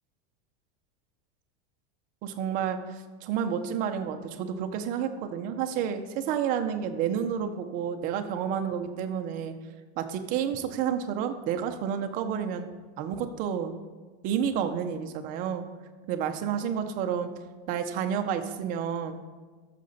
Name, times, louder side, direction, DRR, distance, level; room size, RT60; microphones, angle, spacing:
voice 1, 2.2-9.5 10.0-12.7 13.0-13.7 14.2-15.7 16.1-17.3 17.7-19.2, right 8 dB, 25° right, 7 dB, 0.5 m, -30 dB
13.5 x 6.6 x 4.0 m, 1.4 s
supercardioid pair, 170°, 35 cm